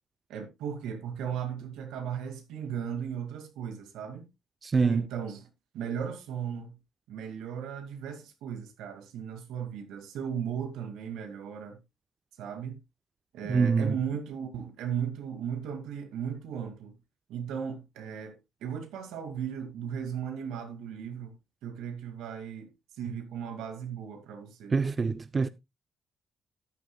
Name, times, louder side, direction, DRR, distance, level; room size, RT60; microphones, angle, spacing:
voice 1, 0.3-4.3 4.9-5.4 5.7-6.8 7.1-11.8 12.4-12.8 13.3-17.0 17.3-21.4 21.6-24.8, right 8 dB, 90° right, 2.3 m, -36 dB
voice 2, 4.6-5.1 13.5-14.0 24.7-25.5, right 5 dB, 35° right, 0.5 m, -25 dB
13.5 x 9.9 x 2.3 m
cardioid pair, 90°, 0 cm